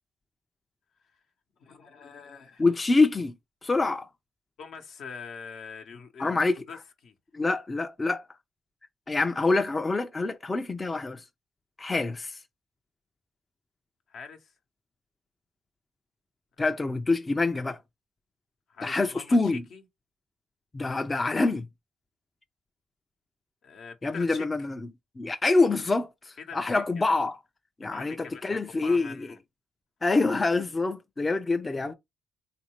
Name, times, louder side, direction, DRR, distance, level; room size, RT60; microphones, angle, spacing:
voice 1, 1.6-2.6 4.6-7.1 14.1-14.5 18.7-19.8 23.6-24.5 26.4-27.1 27.9-29.4, left 5 dB, 70° left, 0.8 m, -44 dB
voice 2, 2.6-3.3 3.6-4.1 6.2-6.6 7.3-8.2 9.1-11.2 11.8-12.4 16.6-17.8 18.8-19.6 20.7-21.7 24.0-24.8 25.2-27.4 27.8-29.1 30.0-31.9, left 3 dB, 30° left, 0.4 m, -26 dB
3.5 x 2.6 x 3.0 m
supercardioid pair, 55°, 0 cm